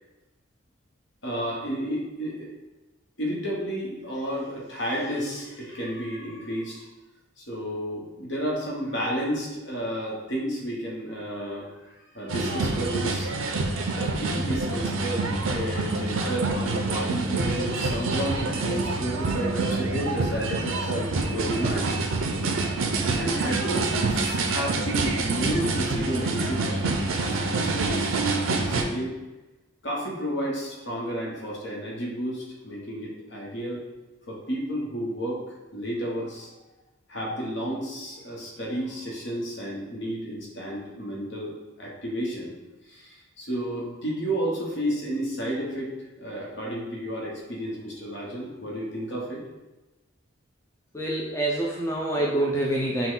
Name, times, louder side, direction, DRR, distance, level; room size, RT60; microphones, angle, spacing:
voice 1, 1.2-2.5 3.2-6.9 7.4-13.3 13.9-22.6 23.1-29.1 29.8-33.8 34.3-35.4 35.7-36.5 37.1-42.5 42.8-45.9 46.2-49.4, equal, 60° left, -4 dB, 1.2 m, -32 dB
sound 1, 12.3-28.8, right 3 dB, 85° right, 0.5 m, -27 dB
voice 2, 50.9-53.1, right 1 dB, 15° left, -3 dB, 0.4 m, -26 dB
5.8 x 2.3 x 3.8 m, 1.1 s
head